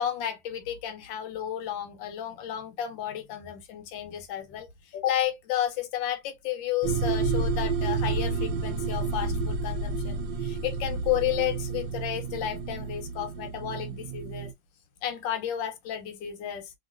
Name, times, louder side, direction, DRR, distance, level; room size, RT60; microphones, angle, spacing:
voice 1, 0.0-4.7 4.9-14.5 15.0-16.7, left 11 dB, 80° left, 1.4 m, -32 dB
sound 1, 6.8-14.5, right 4 dB, 80° right, 1.3 m, -30 dB
3.0 x 2.8 x 2.3 m
omnidirectional pair, 2.0 m